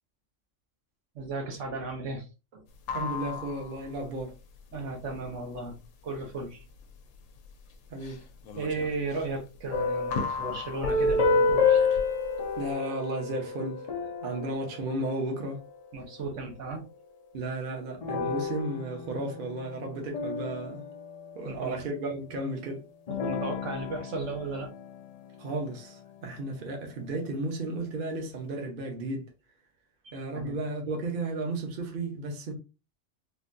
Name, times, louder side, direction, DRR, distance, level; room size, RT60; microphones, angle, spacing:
voice 1, 1.1-2.3 2.5-2.6 4.7-5.8 6.0-6.6 8.6-11.8 15.9-16.8 21.4-21.8 23.1-24.7 30.1-30.6, right 3 dB, 70° right, 1.2 m, -35 dB
sound 1, 2.7-12.7, left 5 dB, 90° left, 1.0 m, -38 dB
voice 2, 2.9-4.3 7.9-8.2 12.6-13.8 14.2-15.6 17.3-20.8 21.3-22.8 25.4-29.3 30.1-32.5, right 2 dB, 50° right, 0.8 m, -34 dB
sound 2, 9.7-15.7 18.0-21.8 23.1-25.8, left 4 dB, 70° left, 0.3 m, -30 dB
3.6 x 2.2 x 2.5 m
omnidirectional pair, 1.3 m